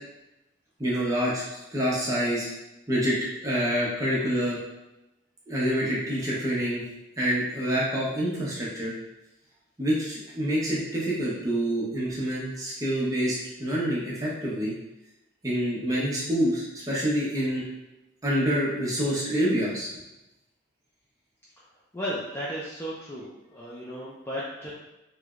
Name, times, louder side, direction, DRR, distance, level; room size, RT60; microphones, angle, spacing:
voice 1, 0.8-1.5 1.7-2.5 2.9-3.2 3.4-4.6 5.5-6.8 7.2-8.9 9.8-14.7 15.4-17.6 18.2-19.9, equal, 15° right, -6 dB, 0.8 m, -27 dB
voice 2, 21.9-24.7, equal, 10° left, -7 dB, 0.3 m, -34 dB
3.2 x 3.0 x 2.4 m, 0.95 s
head